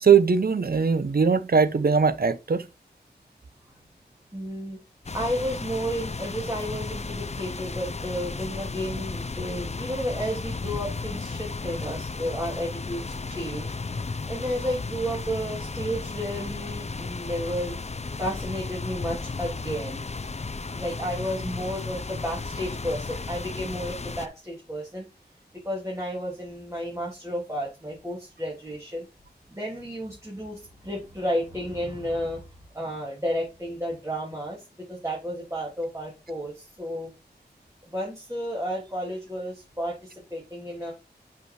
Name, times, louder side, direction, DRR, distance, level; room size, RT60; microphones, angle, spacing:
voice 1, 0.0-2.7, right 6 dB, 60° right, 0.7 m, -20 dB
voice 2, 4.3-4.8 5.1-13.7 14.3-17.8 18.2-20.1 20.7-25.0 25.6-29.0 29.5-32.4 32.7-37.1 37.9-40.9, equal, 15° right, 2.9 m, -32 dB
sound 1, 5.0-24.3, left 3 dB, 40° left, 0.6 m, -34 dB
6.0 x 5.6 x 4.7 m
wide cardioid pair, 70°, 18 cm